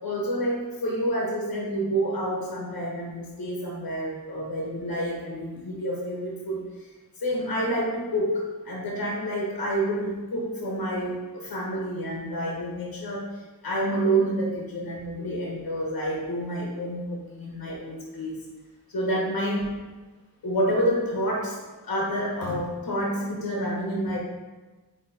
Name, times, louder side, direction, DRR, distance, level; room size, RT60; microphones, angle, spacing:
voice 1, 0.0-6.9 7.2-18.4 18.9-19.7 20.4-21.6 21.8-24.2, right 1 dB, 90° left, -3 dB, 1.3 m, -28 dB
8.7 x 3.0 x 4.2 m, 1.2 s
wide cardioid pair, 140°, 36 cm